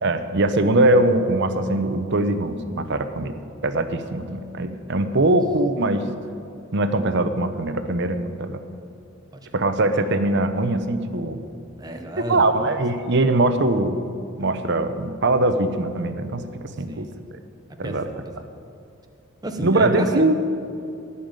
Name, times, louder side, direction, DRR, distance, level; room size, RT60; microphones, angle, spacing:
voice 1, 0.0-3.3 3.6-6.1 6.7-8.6 9.5-11.4 12.3-14.0 14.4-16.4 16.8-17.1 17.8-18.1 19.6-20.3, right 2 dB, 55° right, 9 dB, 0.8 m, -21 dB
voice 2, 4.1-4.8 5.2-5.3 9.3-9.4 11.8-12.8 16.7-17.2 17.8-18.4 19.4-20.3, right 1 dB, 20° right, 4 dB, 0.9 m, -32 dB
16.5 x 5.7 x 9.0 m, 2.6 s
head